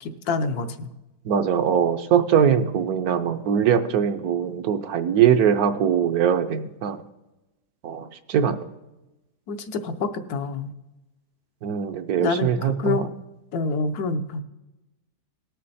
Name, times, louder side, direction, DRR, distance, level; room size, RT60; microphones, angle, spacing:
voice 1, 0.0-0.9 2.4-2.7 9.5-10.7 12.2-13.1 13.5-14.4, left 4 dB, 70° left, 8 dB, 1.2 m, -27 dB
voice 2, 1.2-7.0 7.8-8.6 11.6-13.0, right 8 dB, 70° right, 8 dB, 1.1 m, -22 dB
18.5 x 6.5 x 4.1 m, 0.99 s
omnidirectional pair, 1.7 m